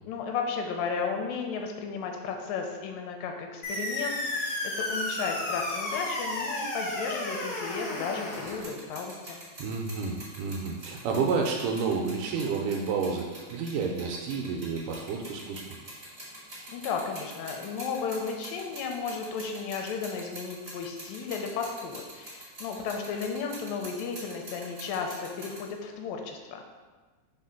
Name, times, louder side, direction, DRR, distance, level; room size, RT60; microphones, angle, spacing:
voice 1, 0.0-9.4 16.7-26.6, left 5 dB, 90° left, 3 dB, 2.4 m, -34 dB
sound 1, 3.6-8.6, left 1 dB, 60° left, 1.6 m, -32 dB
sound 2, 8.3-25.7, right 1 dB, 25° right, 1.1 m, -45 dB
voice 2, 9.6-15.8, right 5 dB, 80° right, 1 dB, 2.0 m, -30 dB
4.9 x 3.8 x 5.6 m, 1.3 s
omnidirectional pair, 4.0 m